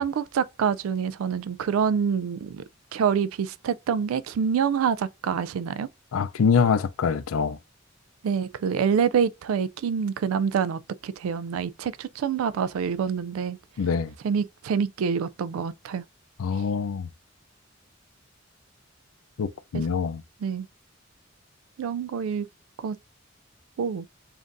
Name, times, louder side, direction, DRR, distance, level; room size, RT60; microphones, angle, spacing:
voice 1, 0.0-2.6 2.9-5.9 8.2-13.6 14.2-16.0 19.7-19.8 20.4-20.7 21.8-22.5 22.8-23.0 23.8-24.1, right 7 dB, 85° right, 0.3 m, -26 dB
voice 2, 6.1-7.6 13.8-14.1 16.4-17.1 19.4-20.2, left 6 dB, 90° left, 0.4 m, -24 dB
7.2 x 2.5 x 2.5 m
head